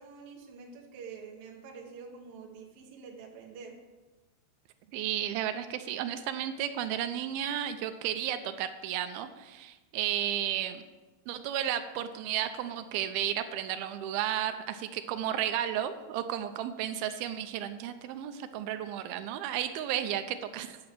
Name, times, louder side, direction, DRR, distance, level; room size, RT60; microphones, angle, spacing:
voice 1, 0.0-3.8, right 5 dB, 65° right, 0 dB, 2.7 m, -47 dB
voice 2, 4.9-10.8 11.3-20.8, right 11 dB, 80° right, 9 dB, 2.2 m, -33 dB
10.5 x 6.3 x 5.9 m, 1.2 s
omnidirectional pair, 4.8 m